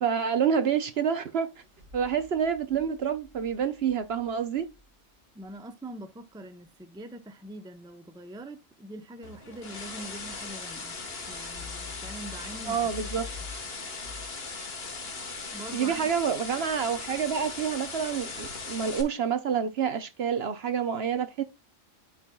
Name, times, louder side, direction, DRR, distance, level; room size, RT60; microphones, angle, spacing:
voice 1, 0.0-1.5 1.9-4.7 12.7-13.3 15.7-21.4, right 7 dB, 60° right, 0.8 m, -28 dB
sound 1, 1.5-5.6 8.9-14.3, left 5 dB, 90° right, 2.5 m, -49 dB
voice 2, 5.3-11.0 11.3-13.1 15.5-16.1, right 1 dB, 5° right, 0.5 m, -43 dB
sound 2, 9.2-19.0, left 4 dB, 50° left, 1.5 m, -39 dB
12.5 x 4.4 x 2.2 m
omnidirectional pair, 1.3 m